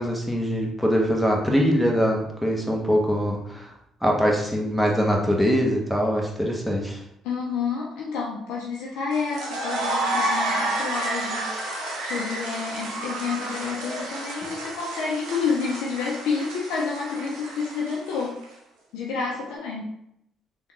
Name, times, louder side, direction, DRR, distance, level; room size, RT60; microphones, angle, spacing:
voice 1, 0.0-3.7 4.0-7.0, equal, ahead, -1 dB, 0.9 m, -23 dB
voice 2, 7.2-11.5 12.0-18.4 18.9-19.9, left 5 dB, 75° left, -3 dB, 0.4 m, -29 dB
sound 1, 9.1-18.4, right 2 dB, 75° right, 0.7 m, -30 dB
3.4 x 2.2 x 2.9 m, 0.78 s
hypercardioid pair, 55°, 0 cm